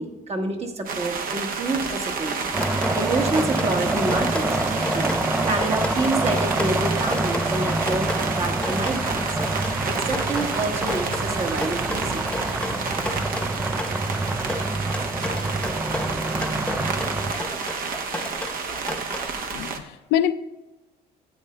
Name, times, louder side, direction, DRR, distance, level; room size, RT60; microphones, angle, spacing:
voice 1, 0.0-9.2 9.5-12.7, right 2 dB, 40° right, 4 dB, 1.4 m, -28 dB
sound 1, 0.9-19.8, right 5 dB, 60° right, 0.9 m, -30 dB
Drip, 2.5-19.6, left 1 dB, 5° left, 0.8 m, -34 dB
sound 2, 2.5-17.3, right 2 dB, 10° right, 0.4 m, -27 dB
voice 2, 19.5-20.3, left 10 dB, 90° left, 12 dB, 0.5 m, -25 dB
13.5 x 8.6 x 2.2 m, 1.1 s
cardioid pair, 110°, 17 cm